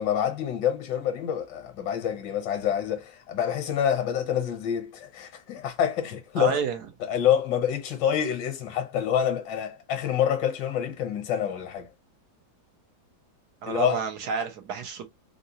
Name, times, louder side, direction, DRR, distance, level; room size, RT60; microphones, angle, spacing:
voice 1, 0.0-6.6 7.1-11.9 13.7-14.0 14.3-14.4, left 9 dB, 70° left, 1.5 m, -27 dB
voice 2, 6.4-6.8 13.6-15.1, right 7 dB, 65° right, 1.3 m, -30 dB
3.8 x 2.3 x 2.7 m
omnidirectional pair, 2.1 m